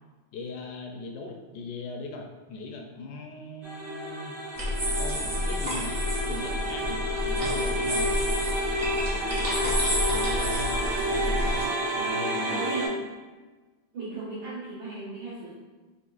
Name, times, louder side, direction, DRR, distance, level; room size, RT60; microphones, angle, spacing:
voice 1, 0.3-4.6 5.0-5.9 6.3-8.2 10.1-10.9 11.2-11.6 11.9-12.6, left 3 dB, 75° left, 2 dB, 1.0 m, -39 dB
sound 1, 3.6-12.9, equal, 65° right, 1.5 m, -30 dB
sound 2, 4.6-11.6, equal, 30° right, 0.7 m, -29 dB
voice 2, 9.1-9.5 12.3-12.9 13.9-15.5, right 3 dB, 85° right, -12 dB, 2.1 m, -37 dB
7.0 x 2.4 x 2.4 m, 1.3 s
omnidirectional pair, 2.1 m